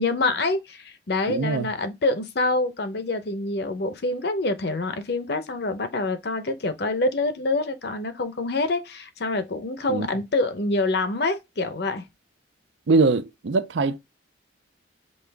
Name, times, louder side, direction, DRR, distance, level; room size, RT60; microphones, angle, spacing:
voice 1, 0.0-12.0, left 2 dB, 55° left, 0.7 m, -26 dB
voice 2, 1.3-1.7 9.9-10.1 12.9-14.0, right 3 dB, 70° right, 0.5 m, -22 dB
5.5 x 2.4 x 3.4 m
head